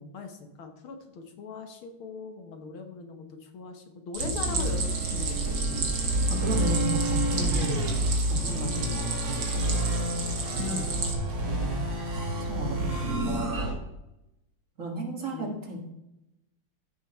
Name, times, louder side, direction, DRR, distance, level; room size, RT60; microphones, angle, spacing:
voice 1, 0.0-5.6 10.6-11.0 15.3-15.6, left 4 dB, 80° left, 5 dB, 2.2 m, -40 dB
Stream, 4.1-11.1, right 4 dB, 55° right, 2.2 m, -34 dB
sound 1, 4.2-13.7, right 1 dB, 80° right, 3.7 m, -29 dB
voice 2, 6.3-8.0 8.3-9.9 10.5-11.2 12.4-13.1 14.8-15.8, right 1 dB, 40° right, 1 dB, 2.1 m, -33 dB
14.0 x 6.4 x 4.4 m, 0.90 s
omnidirectional pair, 2.3 m